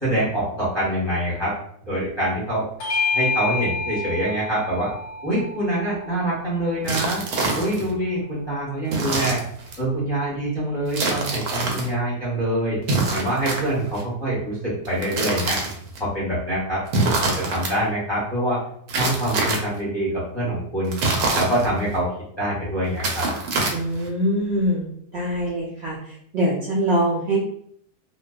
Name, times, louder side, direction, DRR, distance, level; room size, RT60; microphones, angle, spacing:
voice 1, 0.0-1.5 1.9-2.7 3.1-4.9 5.2-7.2 7.5-9.4 9.8-12.8 13.1-15.6 16.0-18.6 19.0-20.1 20.3-21.0 21.3-22.1 22.4-23.3, right 1 dB, 25° left, -9 dB, 0.6 m, -25 dB
Bell / Doorbell, 2.8-7.6, left 4 dB, 90° left, 1.2 m, -29 dB
sound 1, 6.8-7.9 8.9-9.8 10.9-11.9 12.8-14.0 14.9-16.0 16.9-17.7 18.9-19.8 20.9-22.0 22.9-24.1, right 3 dB, 75° right, 1.0 m, -25 dB
voice 2, 23.7-27.4, right 1 dB, 90° right, -5 dB, 0.5 m, -24 dB
2.6 x 2.2 x 2.3 m, 0.66 s
omnidirectional pair, 1.7 m